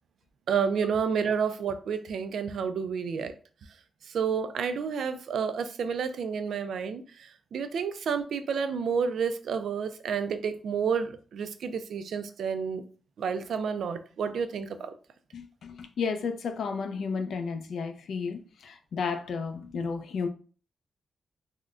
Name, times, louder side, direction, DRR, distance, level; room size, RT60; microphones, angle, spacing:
voice 1, 0.5-3.3 4.1-7.0 7.5-12.8 13.2-14.9, right 6 dB, 85° right, 0.3 m, -30 dB
voice 2, 15.3-20.3, left 5 dB, 80° left, 0.4 m, -33 dB
3.6 x 2.1 x 2.4 m
wide cardioid pair, 165°, 0 cm